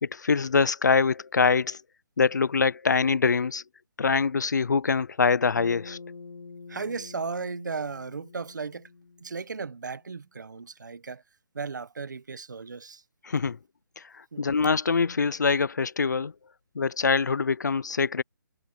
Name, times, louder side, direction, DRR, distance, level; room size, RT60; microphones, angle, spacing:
voice 1, 0.0-1.8 2.2-3.6 4.0-6.0 13.2-13.6 14.0-16.3 16.7-18.2, left 5 dB, 55° left, 0.6 m, -24 dB
Bass guitar, 5.5-10.0, left 4 dB, 70° left, 1.0 m, -46 dB
voice 2, 6.7-8.9 9.2-11.2 11.5-13.0 14.3-14.4, right 4 dB, 60° right, 1.5 m, -35 dB
hypercardioid pair, 180°, 11 cm